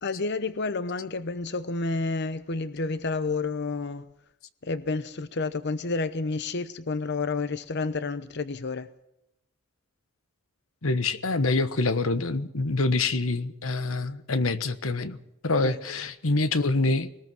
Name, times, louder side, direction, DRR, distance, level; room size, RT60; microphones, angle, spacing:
voice 1, 0.0-4.1 4.6-8.9 15.6-15.8, left 3 dB, 55° left, 0.8 m, -30 dB
voice 2, 10.8-15.2 15.4-17.1, left 3 dB, 90° left, 1.3 m, -26 dB
21.5 x 19.5 x 6.2 m
head